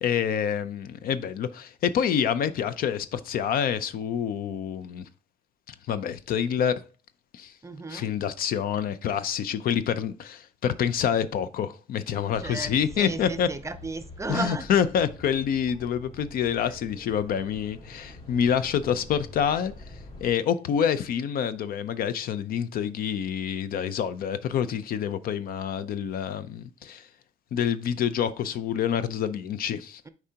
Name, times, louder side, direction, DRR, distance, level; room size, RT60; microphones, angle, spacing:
voice 1, 0.0-5.0 5.9-6.8 7.3-7.5 7.9-13.5 14.3-19.7 20.2-27.0 27.5-30.0, left 8 dB, 60° left, 0.6 m, -27 dB
voice 2, 7.6-8.1 12.4-14.7 16.6-16.7, right 3 dB, 15° right, 0.6 m, -34 dB
sound 1, 12.3-20.3, left 2 dB, 35° left, 2.4 m, -46 dB
8.5 x 4.7 x 2.8 m
cardioid pair, 110°, 17 cm